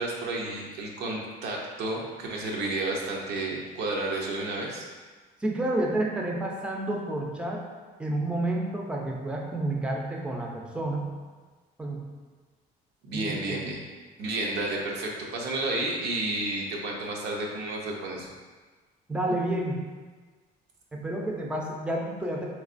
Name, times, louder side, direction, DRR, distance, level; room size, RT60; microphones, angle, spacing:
voice 1, 0.0-4.8 13.0-13.8 14.2-18.3, right 2 dB, 85° right, -1 dB, 0.7 m, -31 dB
voice 2, 5.4-7.6 8.0-11.1 11.8-12.0 13.1-13.6 19.1-19.8 20.9-22.4, right 1 dB, 5° right, -1 dB, 0.4 m, -30 dB
3.5 x 3.2 x 2.5 m, 1.4 s
cardioid pair, 110°, 17 cm